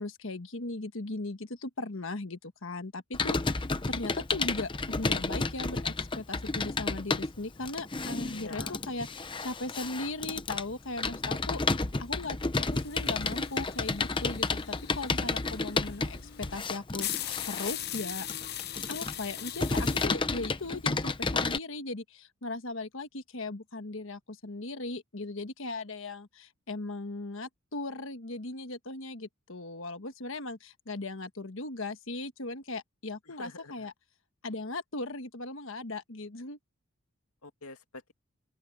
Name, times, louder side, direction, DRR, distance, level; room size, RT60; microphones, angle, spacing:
voice 1, 0.0-11.6 12.0-18.3 18.9-33.9 34.4-36.6, left 2 dB, 60° left, 1.4 m, -38 dB
Computer keyboard, 3.1-21.6, left 3 dB, 20° left, 0.7 m, -31 dB
voice 2, 8.3-8.8 33.3-33.9 37.4-38.1, left 3 dB, 85° left, 2.4 m, -46 dB
sound 1, 12.7-20.1, left 12 dB, 45° left, 0.9 m, -40 dB
open air
head